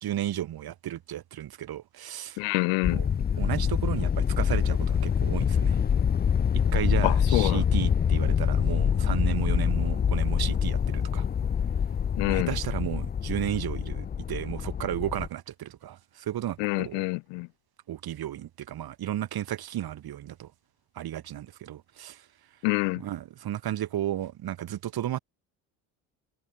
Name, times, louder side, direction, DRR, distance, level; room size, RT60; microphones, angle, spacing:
voice 1, 0.0-2.4 2.9-3.1 3.4-5.8 6.7-11.3 12.2-17.1 17.9-20.5 20.9-22.3 23.0-25.2, right 12 dB, 55° right, 2.3 m, -33 dB
voice 2, 2.4-3.0 7.0-7.6 12.2-12.5 16.6-17.5 22.6-23.0, left 30 dB, 80° left, 0.8 m, -27 dB
sound 1, 2.8-15.3, left 7 dB, 25° left, 0.5 m, -25 dB
supercardioid pair, 70°, 44 cm